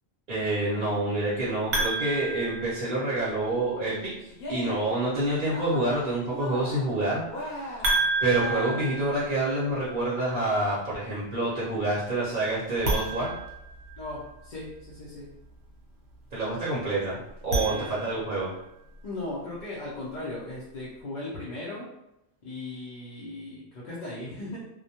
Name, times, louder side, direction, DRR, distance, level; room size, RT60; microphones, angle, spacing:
voice 1, 0.3-7.8 8.2-13.4 16.3-18.5, right 2 dB, 50° right, -8 dB, 0.8 m, -28 dB
sound 1, 1.7-3.4 7.8-9.9 12.7-14.4 17.3-18.5, right 2 dB, 85° right, 1.0 m, -30 dB
Cheering, 4.3-5.0 5.3-6.0 6.3-7.0 7.3-9.1, left 1 dB, 70° left, 0.9 m, -38 dB
voice 2, 14.0-15.3 17.5-18.0 19.0-21.9 22.4-24.6, left 2 dB, 55° left, -8 dB, 0.6 m, -37 dB
2.2 x 2.1 x 2.7 m, 0.86 s
omnidirectional pair, 1.1 m